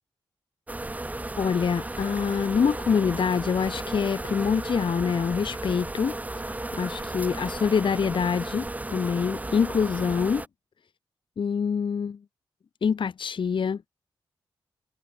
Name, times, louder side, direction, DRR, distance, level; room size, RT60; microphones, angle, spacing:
sound 1, 0.7-10.5, right 2 dB, 15° right, 0.6 m, -34 dB
voice 1, 1.4-6.2 6.4-10.4 11.4-12.2 12.8-13.9, left 6 dB, 60° left, 0.7 m, -25 dB
open air
supercardioid pair, 40°, 10 cm